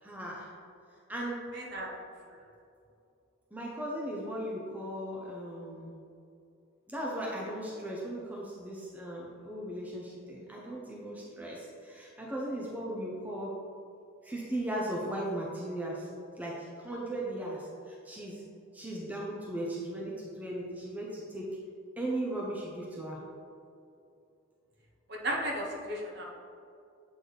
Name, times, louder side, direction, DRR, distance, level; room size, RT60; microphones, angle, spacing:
voice 1, 0.0-0.5 1.1-1.4 2.3-2.4 3.5-5.9 6.9-13.6 14.2-16.1 16.4-18.4 18.7-21.6 22.0-23.2, right 1 dB, 10° right, -4 dB, 0.6 m, -37 dB
voice 2, 1.5-1.9 25.2-26.3, right 1 dB, 50° right, -2 dB, 1.0 m, -34 dB
7.8 x 4.0 x 3.3 m, 2.6 s
head